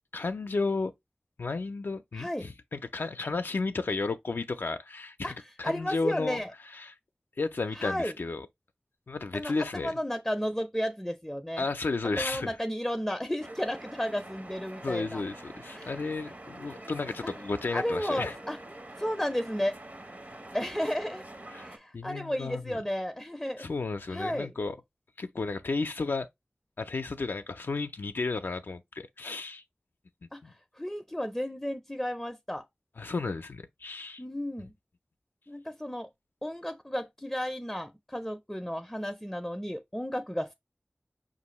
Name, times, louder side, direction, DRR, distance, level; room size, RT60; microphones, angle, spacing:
voice 1, 0.1-0.9 1.4-6.4 6.7-7.0 7.4-8.5 9.1-9.9 11.6-12.5 14.8-18.4 21.5-21.7 21.9-22.8 23.6-24.8 25.2-26.3 26.8-29.6 30.4-30.5 33.0-34.2, left 3 dB, 85° left, 0.3 m, -33 dB
voice 2, 2.1-2.5 5.2-6.5 7.7-8.1 9.3-9.5 9.8-11.6 12.2-15.2 15.7-16.0 17.2-17.3 17.7-18.6 19.0-19.7 20.5-21.2 21.6-23.7 24.1-24.5 30.3-32.6 34.2-34.7 35.5-36.1 36.4-40.5, equal, 10° left, 0.4 m, -33 dB
sound 1, 13.4-21.8, right 1 dB, 50° right, 0.7 m, -46 dB
5.3 x 2.5 x 2.9 m
wide cardioid pair, 45°, 4 cm